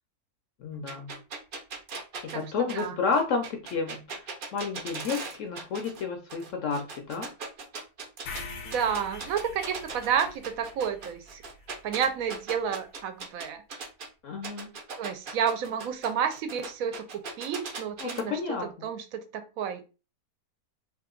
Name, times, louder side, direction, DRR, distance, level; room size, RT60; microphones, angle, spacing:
voice 1, 0.6-1.1 2.2-4.2 4.5-7.3 14.2-14.7 18.0-18.7, left 5 dB, 65° left, 4 dB, 0.8 m, -31 dB
sound 1, 0.9-6.0 6.3-8.4 8.7-14.1 14.4-18.2, right 4 dB, 55° right, 0.5 m, -39 dB
voice 2, 2.3-3.0 8.6-11.4 11.8-13.6 15.0-20.0, right 7 dB, 70° right, 8 dB, 0.9 m, -31 dB
sound 2, 8.3-12.4, left 4 dB, 85° left, 1.2 m, -44 dB
2.8 x 2.4 x 3.6 m, 0.32 s
omnidirectional pair, 1.6 m